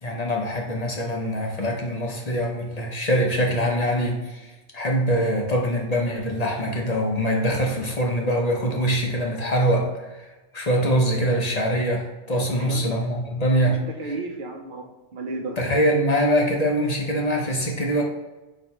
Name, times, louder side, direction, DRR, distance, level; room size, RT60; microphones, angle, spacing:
voice 1, 0.0-14.2 15.6-18.0, equal, 40° left, 0 dB, 0.6 m, -24 dB
voice 2, 12.6-13.0 13.7-15.6, right 2 dB, 55° right, 3 dB, 0.7 m, -34 dB
4.2 x 2.9 x 4.5 m, 1.1 s
omnidirectional pair, 1.2 m